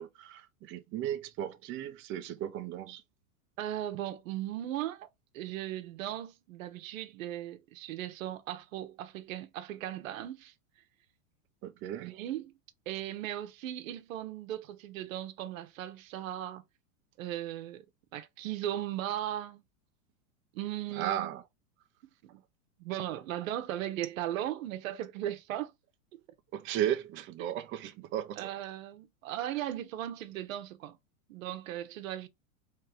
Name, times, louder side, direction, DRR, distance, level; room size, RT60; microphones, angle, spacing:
voice 1, 0.0-3.0 11.6-12.1 20.9-21.4 26.5-28.5, right 11 dB, 30° right, 0.7 m, -35 dB
voice 2, 3.6-5.1 5.3-10.5 12.0-12.5 12.9-16.6 17.2-17.8 18.1-19.6 20.5-21.3 22.3-22.4 22.8-25.7 26.1-26.2 28.4-31.0 31.3-32.3, right 12 dB, 70° right, 1.1 m, -37 dB
4.5 x 3.3 x 3.4 m
supercardioid pair, 125°, 42 cm